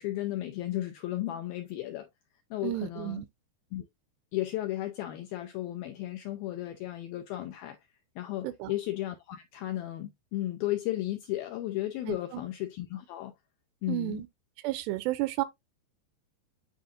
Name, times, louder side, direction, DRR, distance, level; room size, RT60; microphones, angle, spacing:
voice 1, 0.0-2.1 2.5-3.2 3.7-3.9 4.3-7.8 8.2-13.3 13.8-14.2, left 15 dB, 85° left, 2.1 m, -34 dB
voice 2, 2.6-3.3 8.4-8.7 12.1-12.4 13.9-14.3 14.6-15.4, right 17 dB, 85° right, 2.5 m, -32 dB
10.0 x 3.8 x 2.6 m
omnidirectional pair, 5.0 m